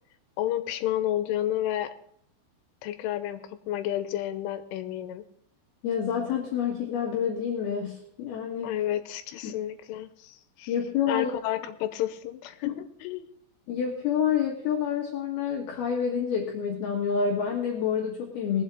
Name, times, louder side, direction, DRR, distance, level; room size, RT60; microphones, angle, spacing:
voice 1, 0.4-1.9 2.8-5.2 8.6-10.7 11.1-13.3, left 12 dB, 85° left, 10 dB, 3.4 m, -31 dB
voice 2, 5.8-8.7 9.4-9.6 10.7-11.3 12.7-12.8 13.7-18.6, left 7 dB, 65° left, -1 dB, 3.0 m, -28 dB
21.0 x 8.0 x 3.5 m, 0.70 s
omnidirectional pair, 5.5 m